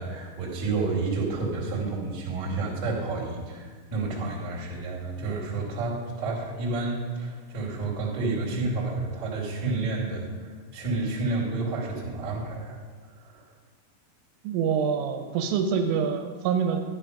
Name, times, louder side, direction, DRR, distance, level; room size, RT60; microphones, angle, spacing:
voice 1, 0.0-12.8 13.1-13.5, right 3 dB, 30° right, -5 dB, 2.2 m, -30 dB
voice 2, 14.4-16.8, right 7 dB, 85° right, 6 dB, 3.4 m, -26 dB
12.5 x 9.5 x 5.1 m, 1.5 s
omnidirectional pair, 5.8 m